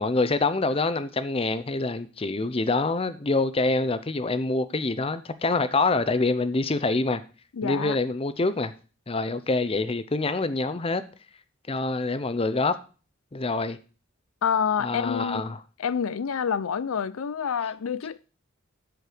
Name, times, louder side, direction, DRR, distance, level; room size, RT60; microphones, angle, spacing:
voice 1, 0.0-7.2 7.6-8.7 9.1-11.0 11.7-12.8 13.3-13.8 14.8-15.6, left 3 dB, 25° left, 0.6 m, -26 dB
voice 2, 7.5-8.0 14.4-15.4 15.8-18.2, left 7 dB, 85° left, 0.5 m, -27 dB
12.5 x 4.7 x 5.0 m
head